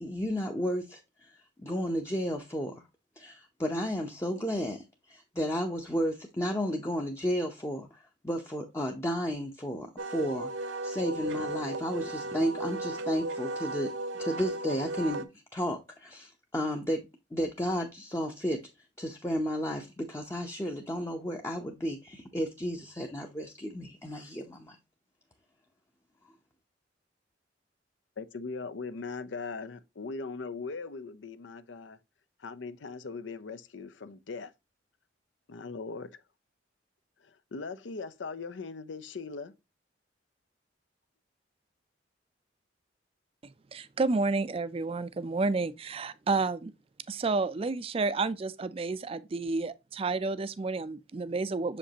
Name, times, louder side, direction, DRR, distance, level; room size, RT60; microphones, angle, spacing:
voice 1, 0.0-2.8 3.2-17.0 17.3-18.6 19.0-24.8, equal, 15° left, 0.7 m, -33 dB
Wind instrument woodwind instrument, 10.0-15.2, right 2 dB, 80° right, 0.7 m, -35 dB
voice 2, 28.2-32.0 32.4-34.5 35.5-36.2 37.2-39.6, left 4 dB, 75° left, 0.6 m, -40 dB
voice 3, 43.7-46.7 47.1-51.8, right 3 dB, 30° right, 0.4 m, -30 dB
6.8 x 5.1 x 2.8 m
head